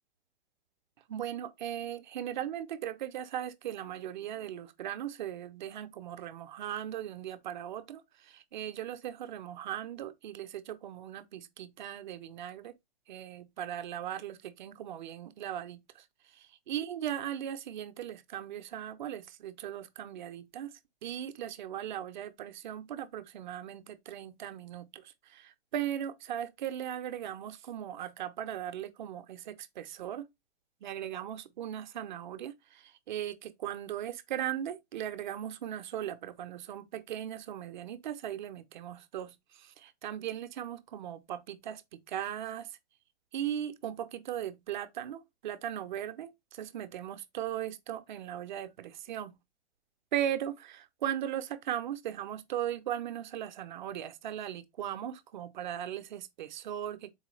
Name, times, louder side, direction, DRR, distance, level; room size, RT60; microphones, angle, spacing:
voice 1, 1.1-12.8 13.1-30.3 30.8-42.8 43.3-49.4 50.1-57.1, right 10 dB, 50° right, 0.4 m, -38 dB
4.1 x 2.2 x 3.0 m
hypercardioid pair, 155°, 32 cm